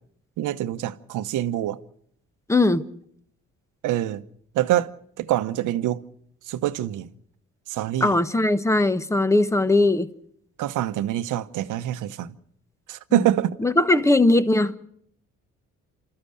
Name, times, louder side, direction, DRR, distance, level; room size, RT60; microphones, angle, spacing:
voice 1, 0.4-1.8 3.8-4.2 4.5-4.9 5.2-6.0 6.5-7.1 7.7-8.1 10.6-12.3 12.9-13.5, right 13 dB, 90° right, 1.0 m, -25 dB
voice 2, 2.5-2.8 8.0-10.1 13.1-13.2 13.6-14.8, left 2 dB, 10° left, 1.2 m, -19 dB
30.0 x 14.0 x 6.5 m
cardioid pair, 90°, 30 cm